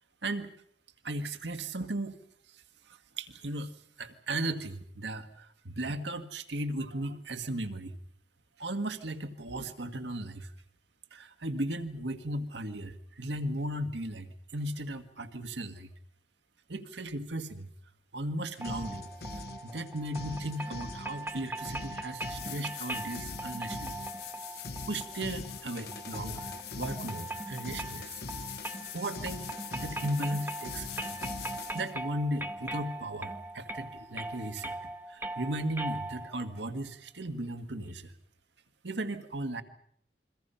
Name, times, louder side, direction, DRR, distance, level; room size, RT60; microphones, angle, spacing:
voice 1, 1.0-2.2 2.5-3.7 4.0-8.0 8.6-10.5 11.1-15.9 16.7-17.7 18.1-19.1 19.6-24.0 24.5-24.6 24.9-28.2 28.9-31.2 31.7-38.1 38.8-39.6, right 1 dB, 85° right, 7 dB, 1.8 m, -36 dB
sound 1, 18.5-31.9, left 2 dB, 60° left, 0.9 m, -44 dB
sound 2, 18.6-36.5, right 2 dB, 10° right, 1.2 m, -40 dB
sound 3, 21.7-21.8 22.2-31.9 34.7-34.8, left 12 dB, 80° left, 5.6 m, -45 dB
29.0 x 23.0 x 5.7 m, 0.65 s
head